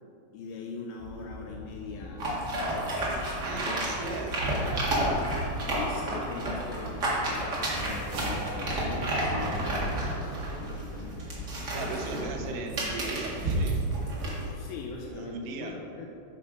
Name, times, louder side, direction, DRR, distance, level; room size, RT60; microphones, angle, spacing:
voice 1, 0.3-2.8 3.5-4.0 5.1-5.3 5.6-11.3 11.8-12.7 14.5-16.1, left 4 dB, 85° left, 0 dB, 2.2 m, -41 dB
sound 1, 1.0-14.1, left 1 dB, 55° left, 2.9 m, -43 dB
sound 2, 2.2-14.5, right 1 dB, 50° right, 1.2 m, -31 dB
voice 2, 3.4-4.6 11.7-13.8 15.1-15.8, right 4 dB, 85° right, 2 dB, 2.9 m, -38 dB
sound 3, 7.6-8.6 9.4-10.1, right 1 dB, 65° right, 2.6 m, -38 dB
10.5 x 5.7 x 4.8 m, 2.6 s
omnidirectional pair, 4.6 m